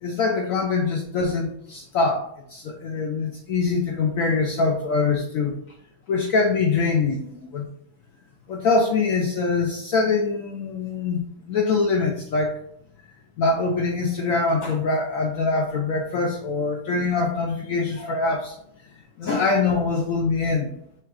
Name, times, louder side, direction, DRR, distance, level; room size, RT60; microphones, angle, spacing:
voice 1, 0.0-5.6 6.1-7.7 8.5-11.2 11.5-12.5 13.4-18.6 19.2-20.7, left 4 dB, 80° left, 1 dB, 0.7 m, -23 dB
5.8 x 2.3 x 3.5 m, 0.71 s
omnidirectional pair, 2.1 m